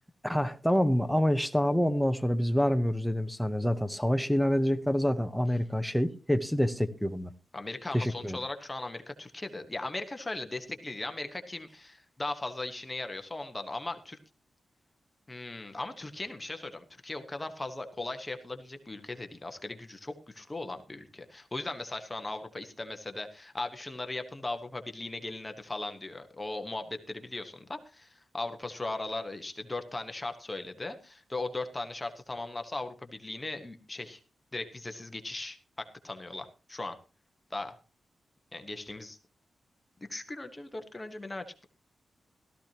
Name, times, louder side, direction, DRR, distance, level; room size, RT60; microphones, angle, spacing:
voice 1, 0.2-7.3 7.9-8.4, equal, ahead, 0.8 m, -27 dB
voice 2, 7.5-14.2 15.3-34.2 34.5-37.0 37.5-37.8 38.5-39.2 40.1-41.7, left 2 dB, 15° left, 1.2 m, -38 dB
16.5 x 13.5 x 2.9 m
wide cardioid pair, 175°, 0 cm